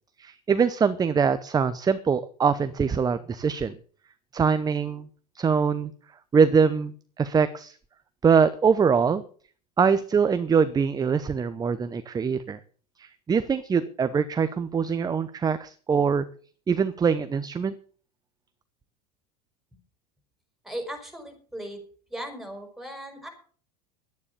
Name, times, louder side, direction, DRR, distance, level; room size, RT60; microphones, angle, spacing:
voice 1, 0.2-3.8 4.3-5.1 5.3-5.9 6.3-7.7 8.2-9.2 9.8-12.6 13.0-16.2 16.7-17.7, right 6 dB, 20° right, 13 dB, 0.8 m, -23 dB
voice 2, 20.6-21.8 22.1-23.3, right 1 dB, ahead, 5 dB, 5.3 m, -37 dB
12.0 x 9.8 x 6.8 m, 0.43 s
hypercardioid pair, 95°, 20 cm